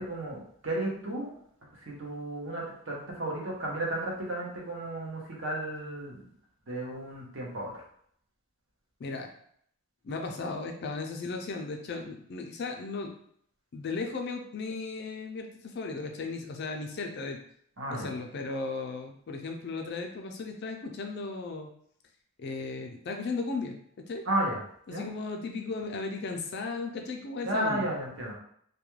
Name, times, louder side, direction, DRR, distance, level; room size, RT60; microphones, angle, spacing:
voice 1, 0.0-1.3 1.7-6.2 6.7-7.7 17.8-18.1 24.3-24.6 24.9-25.1 27.4-28.3, right 1 dB, 55° right, -3 dB, 0.8 m, -33 dB
voice 2, 10.0-13.1 13.7-17.4 17.9-21.7 22.4-24.2 24.9-27.9, left 3 dB, 50° left, 3 dB, 0.3 m, -36 dB
2.3 x 2.2 x 3.0 m, 0.66 s
head